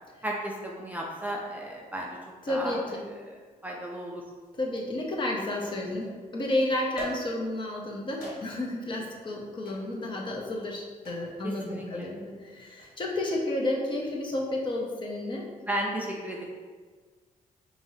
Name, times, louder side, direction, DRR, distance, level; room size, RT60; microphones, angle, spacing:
voice 1, 0.2-2.2 2.5-2.8 3.3-3.4 3.6-4.2 11.4-12.1 15.7-16.4, right 1 dB, 10° right, -2 dB, 0.4 m, -34 dB
voice 2, 2.5-3.0 4.5-15.5, left 1 dB, 35° left, -1 dB, 0.7 m, -31 dB
sound 1, 4.4-4.5 5.6-6.2 7.0-7.6 8.2-8.8 9.6-9.9 11.0-11.4 12.6-13.0, equal, 80° left, 1.1 m, -41 dB
5.2 x 3.0 x 2.7 m, 1.5 s
cardioid pair, 160°, 15 cm